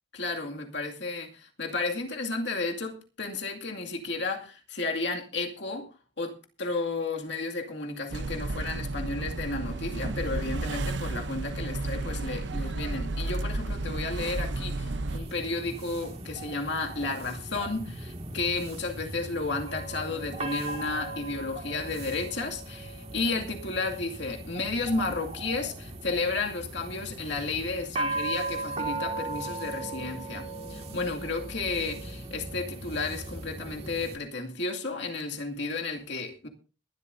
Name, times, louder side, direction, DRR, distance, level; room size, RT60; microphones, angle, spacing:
voice 1, 0.1-5.9 6.2-36.5, left 3 dB, 65° left, 2.3 m, -32 dB
sound 1, 8.1-15.2, right 2 dB, 70° right, 0.8 m, -32 dB
sound 2, 15.1-34.2, right 2 dB, 30° right, 2.0 m, -38 dB
21.5 x 12.0 x 2.7 m
head